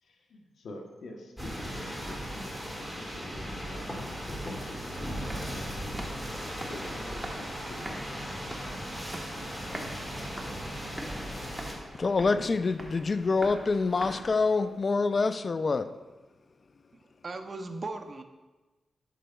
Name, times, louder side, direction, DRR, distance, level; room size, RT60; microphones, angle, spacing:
voice 1, 0.0-5.6 6.7-7.9 10.4-10.5 12.2-12.5 14.5-14.7, left 2 dB, 80° left, 0.9 m, -47 dB
sound 1, 1.4-11.7, equal, 5° left, 1.7 m, -37 dB
sound 2, 4.7-14.8, right 1 dB, 15° right, 1.1 m, -44 dB
voice 2, 12.0-15.9, left 4 dB, 50° left, 0.3 m, -26 dB
voice 3, 17.2-18.2, right 3 dB, 45° right, 0.6 m, -37 dB
10.0 x 6.2 x 2.2 m
cardioid pair, 60°, 0 cm